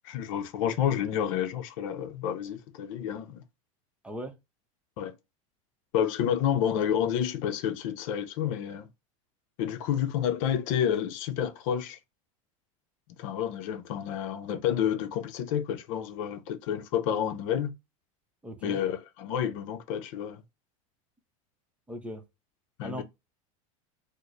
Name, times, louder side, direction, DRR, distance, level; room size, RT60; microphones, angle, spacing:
voice 1, 0.0-3.4 5.0-5.1 5.9-8.9 9.6-12.0 13.2-17.7 18.6-20.4 22.8-23.0, left 9 dB, 65° left, 0.7 m, -29 dB
voice 2, 4.0-4.3 18.4-18.8 21.9-22.2 22.8-23.0, equal, 5° right, 0.7 m, -38 dB
4.4 x 2.1 x 3.0 m
supercardioid pair, 135°, 18 cm